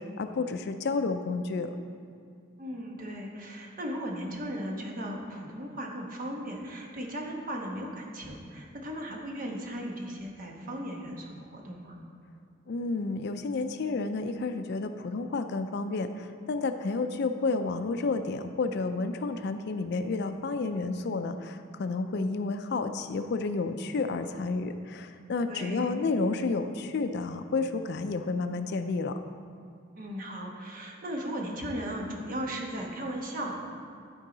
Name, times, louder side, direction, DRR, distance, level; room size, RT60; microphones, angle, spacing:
voice 1, 0.0-1.7 12.7-29.2, left 3 dB, 55° left, 9 dB, 0.4 m, -31 dB
voice 2, 2.6-12.0 25.5-26.0 30.0-33.6, equal, 45° right, 0 dB, 1.1 m, -37 dB
12.5 x 4.6 x 3.9 m, 2.4 s
head